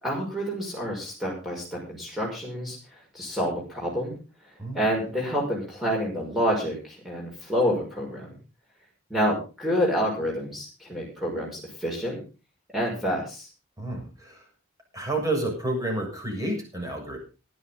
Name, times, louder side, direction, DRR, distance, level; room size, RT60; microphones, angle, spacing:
voice 1, 0.0-2.8 3.1-4.1 4.7-8.3 9.1-12.2 12.7-13.5, equal, ahead, -3 dB, 5.9 m, -28 dB
voice 2, 13.8-14.5 14.9-17.2, right 2 dB, 15° right, 1 dB, 7.1 m, -30 dB
19.0 x 11.0 x 3.9 m, 0.33 s
head